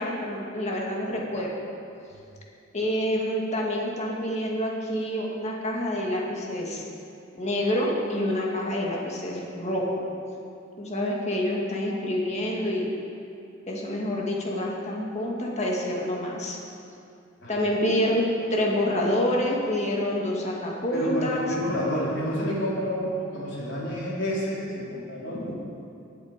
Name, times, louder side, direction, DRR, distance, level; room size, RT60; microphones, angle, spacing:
voice 1, 0.0-1.7 2.7-6.8 7.3-10.1 10.8-12.9 13.7-16.6 17.5-21.5, left 1 dB, 35° left, -2 dB, 1.9 m, -27 dB
voice 2, 20.9-25.5, equal, 60° left, -6 dB, 3.7 m, -29 dB
19.5 x 8.0 x 5.1 m, 2.6 s
head